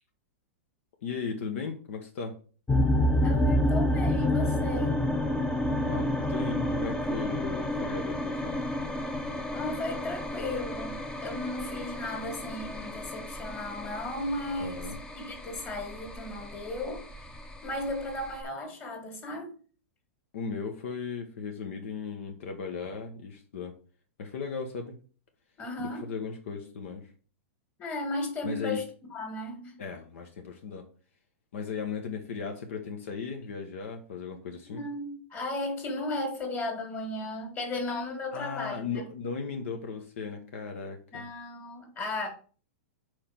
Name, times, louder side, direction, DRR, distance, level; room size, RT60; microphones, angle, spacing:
voice 1, 1.0-2.4 5.9-8.6 14.6-15.0 20.3-23.7 24.2-24.9 25.8-27.1 28.4-28.8 29.8-30.9 31.5-34.8 38.3-41.3, left 5 dB, 70° left, 1.1 m, -37 dB
sound 1, 2.7-18.4, left 1 dB, 10° left, 0.7 m, -29 dB
voice 2, 3.2-5.0 9.5-17.1 17.6-19.5 25.6-26.1 27.8-29.8 34.6-39.0 41.1-42.3, left 2 dB, 25° left, 2.2 m, -35 dB
4.9 x 4.5 x 5.8 m
hypercardioid pair, 135°, 7 cm